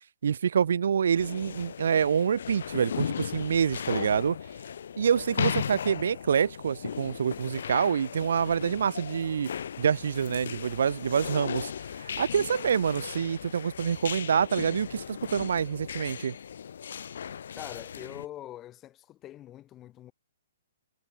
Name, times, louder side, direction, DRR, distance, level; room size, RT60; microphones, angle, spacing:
voice 1, 0.2-4.4 5.0-9.5 9.8-16.3, right 7 dB, 65° right, 0.9 m, -26 dB
sound 1, 1.2-18.3, left 8 dB, 60° left, 3.4 m, -37 dB
voice 2, 17.5-20.1, left 13 dB, 15° left, 2.7 m, -43 dB
hypercardioid pair, 175°, 0 cm